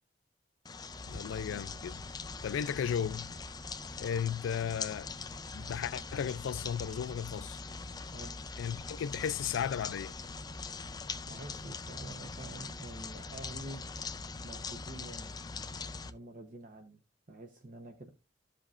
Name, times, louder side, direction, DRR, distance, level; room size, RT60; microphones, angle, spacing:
Rain on Concrete and Leaves, 0.6-16.1, left 4 dB, 20° left, 0.4 m, -42 dB
sound 1, 1.0-15.0, right 1 dB, 10° right, 0.8 m, -53 dB
voice 1, 1.1-2.0 2.4-3.3 4.0-5.1 5.5-7.6 8.6-10.1, left 8 dB, 85° left, 0.3 m, -35 dB
voice 2, 11.3-13.8 14.4-15.3 16.0-17.0 17.3-18.1, right 2 dB, 45° right, 0.8 m, -47 dB
13.5 x 5.1 x 2.4 m
head